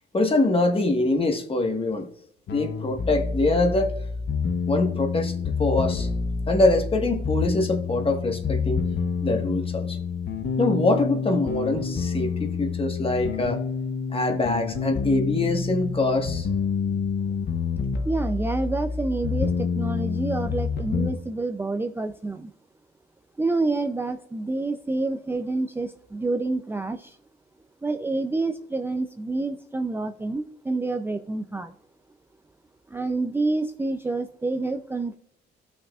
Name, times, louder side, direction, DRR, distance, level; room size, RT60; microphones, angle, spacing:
voice 1, 0.1-2.1 2.5-3.9 4.7-6.1 6.5-8.8 9.2-10.0 10.6-13.6 14.1-16.5, left 2 dB, 30° left, 5 dB, 1.4 m, -24 dB
sound 1, 2.5-21.1, left 5 dB, 60° left, 1.0 m, -28 dB
voice 2, 18.1-22.5 23.4-27.2 27.8-31.7 32.9-35.2, right 3 dB, 10° right, 6 dB, 0.4 m, -28 dB
14.5 x 6.2 x 2.4 m, 0.68 s
cardioid pair, 90°, 20 cm